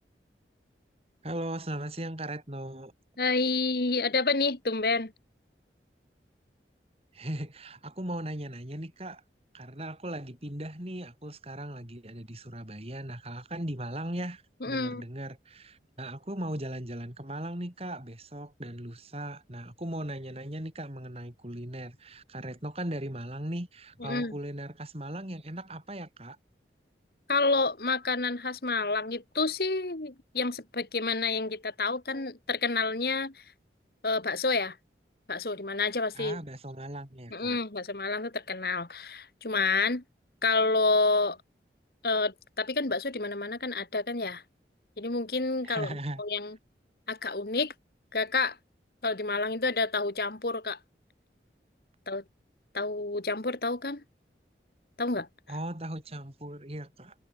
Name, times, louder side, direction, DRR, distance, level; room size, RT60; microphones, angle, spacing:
voice 1, 1.2-2.9 7.1-9.2 9.5-26.4 36.1-37.6 45.6-46.2 55.5-57.1, right 1 dB, 35° right, 3.5 m, -38 dB
voice 2, 3.2-5.1 14.6-15.0 24.0-24.3 27.3-33.3 34.0-34.8 35.3-36.4 37.3-40.0 40.4-41.4 42.0-44.4 45.0-46.6 47.1-47.7 48.1-48.6 49.0-50.8 52.1-52.2 52.7-54.0 55.0-55.3, left 3 dB, 55° left, 1.6 m, -29 dB
head